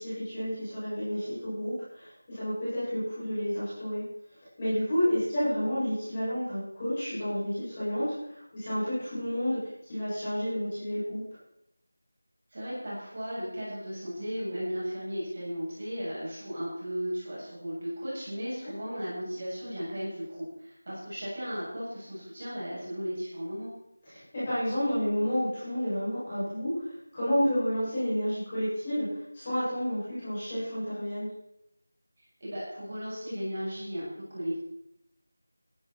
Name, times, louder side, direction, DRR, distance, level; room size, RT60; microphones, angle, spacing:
voice 1, 0.0-4.0 4.6-11.2 24.0-31.3, equal, 15° left, -12 dB, 7.3 m, -30 dB
voice 2, 12.5-23.7 32.2-34.6, equal, 30° right, -8 dB, 7.7 m, -35 dB
15.0 x 14.0 x 4.5 m, 0.81 s
figure-of-eight pair, 180°, 0 cm